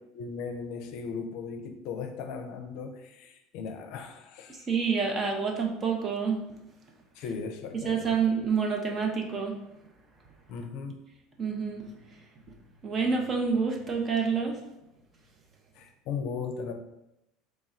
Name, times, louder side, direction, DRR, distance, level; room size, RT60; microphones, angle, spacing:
voice 1, 0.1-4.7 7.2-8.0 10.5-11.0 15.8-16.7, left 5 dB, 65° left, 6 dB, 0.5 m, -37 dB
voice 2, 4.7-6.4 7.8-9.6 11.4-11.9 12.8-14.6, right 5 dB, 35° right, 1 dB, 0.8 m, -28 dB
3.3 x 2.3 x 4.3 m, 0.89 s
hypercardioid pair, 90°, 0 cm